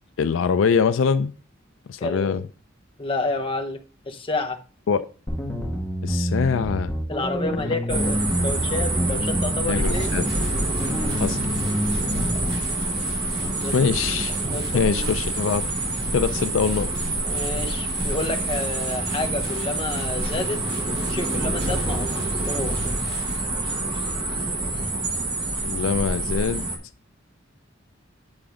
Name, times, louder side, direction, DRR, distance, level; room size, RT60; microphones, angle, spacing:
voice 1, 0.2-1.3 1.9-2.4 4.9-5.0 6.0-6.9 9.7-10.3 11.2-11.5 13.7-14.3 14.7-15.7 16.1-16.9 25.6-26.6, left 6 dB, 70° left, 0.4 m, -23 dB
voice 2, 2.0-2.4 3.0-4.6 7.1-10.1 11.0-11.1 13.6-13.7 14.5-15.1 17.2-20.6 21.1-22.8, left 2 dB, 25° left, 0.8 m, -30 dB
sound 1, 5.3-12.6, equal, 10° left, 1.1 m, -28 dB
sound 2, 7.9-26.8, right 2 dB, 25° right, 1.2 m, -27 dB
sound 3, 9.8-23.4, right 2 dB, 55° right, 3.1 m, -43 dB
8.8 x 3.8 x 4.9 m
head